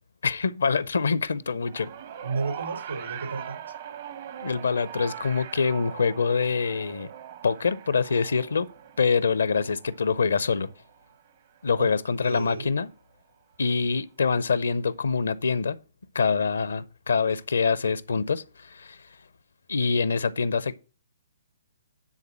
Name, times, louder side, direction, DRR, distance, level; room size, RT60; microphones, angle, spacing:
voice 1, 0.2-1.9 4.4-7.1 7.4-8.7 9.0-10.7 11.6-12.9 13.6-15.8 16.1-19.0 19.7-20.8, left 5 dB, 70° left, 0.6 m, -25 dB
sound 1, 1.7-12.1 13.1-13.2, right 10 dB, 45° right, 0.8 m, -42 dB
voice 2, 2.2-3.6 11.8-11.9 12.2-12.7, right 4 dB, 75° right, 4.4 m, -32 dB
9.9 x 3.9 x 7.2 m
figure-of-eight pair, 125°, 0 cm